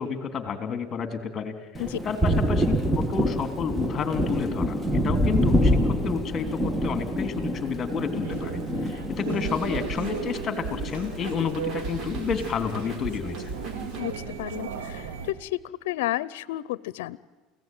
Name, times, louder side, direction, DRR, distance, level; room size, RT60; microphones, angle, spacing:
voice 1, 0.0-2.7 2.9-13.5 14.2-14.3, left 6 dB, 30° left, 9 dB, 3.1 m, -31 dB
Thunder, 1.7-11.5 11.8-13.0, equal, 5° right, 1.8 m, -26 dB
sound 1, 8.2-15.3, right 6 dB, 85° right, 2.6 m, -36 dB
sound 2, 9.4-14.4, right 3 dB, 45° right, 5.0 m, -38 dB
voice 2, 14.0-17.2, left 16 dB, 85° left, 20 dB, 0.7 m, -32 dB
29.0 x 17.0 x 9.3 m, 1.3 s
supercardioid pair, 115°, 0 cm